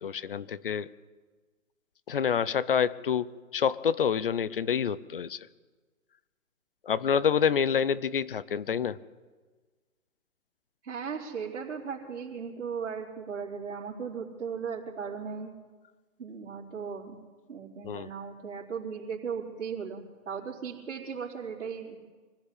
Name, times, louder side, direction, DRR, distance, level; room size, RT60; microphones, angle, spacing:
voice 1, 0.0-0.9 2.1-5.5 6.8-9.0 17.8-18.1, left 7 dB, 40° left, 18 dB, 0.7 m, -27 dB
voice 2, 10.8-15.5 16.2-17.2 17.5-22.0, right 6 dB, 60° right, -7 dB, 4.1 m, -37 dB
24.5 x 15.5 x 8.5 m, 1.4 s
hypercardioid pair, 155°, 43 cm